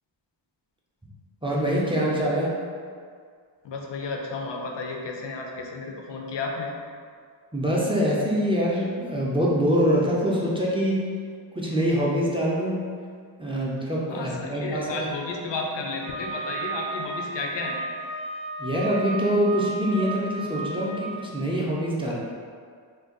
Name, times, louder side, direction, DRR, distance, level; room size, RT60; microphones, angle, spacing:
voice 1, 1.4-2.6 7.5-11.1 11.5-12.9 13.4-15.1 18.6-22.2, equal, 10° right, -5 dB, 0.4 m, -24 dB
voice 2, 3.6-6.7 14.1-17.8, left 3 dB, 65° left, 0 dB, 0.5 m, -32 dB
Wind instrument woodwind instrument, 16.0-21.1, right 2 dB, 70° right, 0.6 m, -34 dB
2.6 x 2.2 x 3.7 m, 2.1 s
wide cardioid pair, 105°, 48 cm